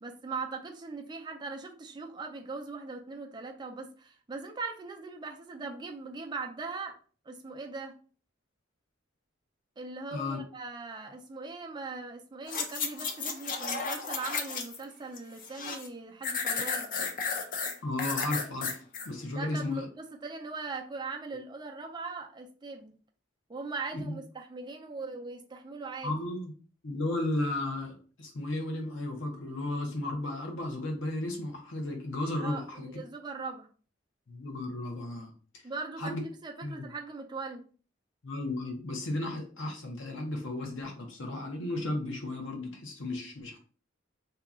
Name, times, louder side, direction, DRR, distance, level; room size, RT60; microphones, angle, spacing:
voice 1, 0.0-7.0 7.3-7.9 9.8-16.9 19.4-22.9 23.5-26.1 32.4-33.7 35.6-36.1 36.4-37.6, right 4 dB, 25° right, 3 dB, 0.4 m, -40 dB
sound 1, 12.5-14.8 15.2-15.9 16.2-19.1 19.5-19.6, left 5 dB, 45° left, 0.5 m, -33 dB
voice 2, 17.8-18.8 19.0-19.9 23.9-24.2 26.0-26.5 26.8-32.9 34.3-35.6 36.0-36.2 36.6-36.9 38.2-43.6, left 2 dB, 80° left, 2 dB, 0.9 m, -34 dB
2.8 x 2.3 x 3.6 m, 0.39 s
head